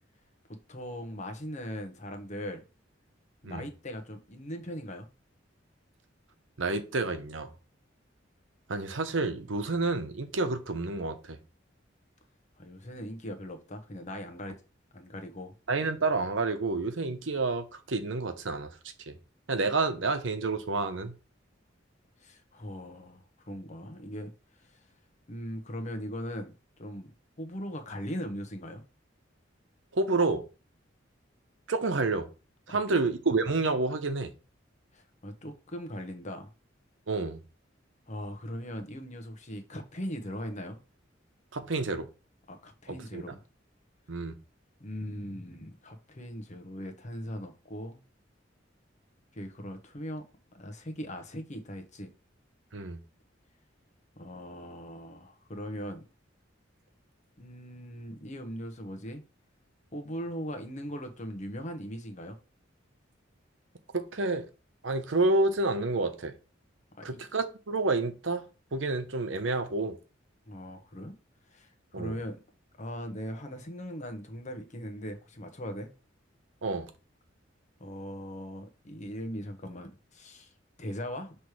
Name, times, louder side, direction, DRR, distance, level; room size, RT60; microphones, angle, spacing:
voice 1, 0.5-2.6 3.4-5.1 12.6-14.6 14.9-15.5 22.2-24.3 24.7-24.8 25.3-26.5 26.8-27.1 27.4-28.8 32.7-33.0 34.9-36.5 38.1-40.8 42.5-43.4 44.8-48.0 49.3-50.2 50.5-52.1 54.2-56.0 57.4-59.2 59.9-62.4 67.0-67.1 70.5-71.1 71.5-72.4 72.8-75.9 77.8-80.5 80.8-81.4, equal, 40° left, 1.0 m, -39 dB
voice 2, 6.6-7.5 8.7-11.4 15.7-18.7 19.1-19.2 19.5-21.1 29.9-30.4 31.7-32.3 32.7-34.3 37.1-37.4 41.5-42.1 43.1-43.2 44.1-44.3 52.7-53.0 63.9-64.5 64.8-66.3 67.0-68.4 68.7-70.0 71.9-72.2 76.6-76.9, right 3 dB, 85° right, 0.9 m, -29 dB
6.1 x 3.3 x 4.8 m
head